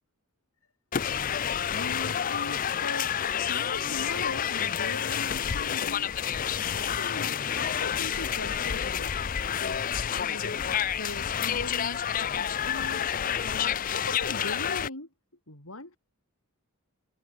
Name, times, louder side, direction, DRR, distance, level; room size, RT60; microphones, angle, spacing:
sound 1, 0.9-14.9, left 8 dB, 35° left, 0.4 m, -29 dB
voice 1, 1.7-6.1 6.6-9.2 9.6-13.1 13.4-15.1 15.5-16.0, left 2 dB, 70° left, 7.1 m, -40 dB
head